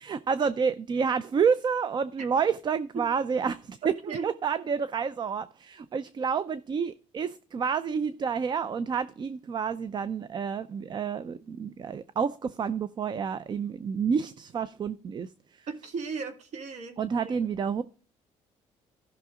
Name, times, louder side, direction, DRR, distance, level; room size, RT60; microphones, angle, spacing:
voice 1, 0.0-15.7 17.0-17.8, right 6 dB, 35° right, 15 dB, 0.5 m, -29 dB
voice 2, 3.8-4.3 15.7-17.0 17.2-17.3, right 5 dB, 65° right, 7 dB, 2.1 m, -35 dB
15.0 x 6.0 x 3.6 m, 0.39 s
cardioid pair, 120°, 13 cm